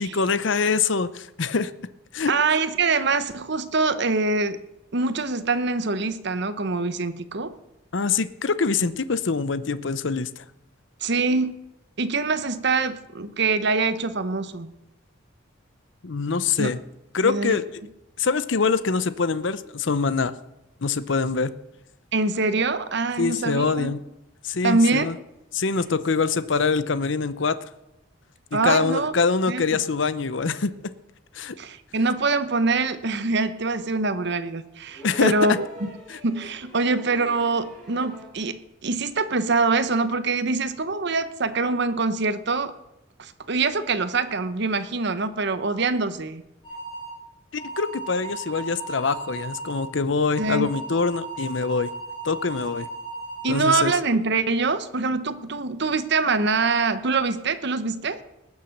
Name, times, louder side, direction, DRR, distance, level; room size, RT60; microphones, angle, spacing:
voice 1, 0.0-1.7 2.1-2.3 7.9-10.4 16.0-16.8 17.1-17.6 18.2-20.3 20.8-21.5 23.2-24.0 24.4-25.2 25.5-27.7 28.5-30.7 31.3-31.6 35.0-35.3 36.1-36.2 47.5-51.9 52.2-52.9 53.5-53.9, left 4 dB, 70° left, 14 dB, 0.7 m, -24 dB
voice 2, 2.3-4.6 4.9-7.5 11.0-11.5 12.0-14.7 16.6-16.7 17.2-17.6 22.1-23.9 24.6-25.1 28.5-29.1 29.5-29.8 31.6-35.9 36.2-42.7 43.2-46.4 50.4-50.7 53.4-58.2, right 3 dB, 60° right, 11 dB, 1.0 m, -24 dB
sound 1, 34.9-38.4 39.8-39.9, left 1 dB, ahead, 5.8 m, -43 dB
sound 2, 46.6-47.1 47.6-49.8 50.3-53.5, right 3 dB, 30° left, 4.6 m, -36 dB
19.5 x 7.3 x 6.6 m, 0.91 s
head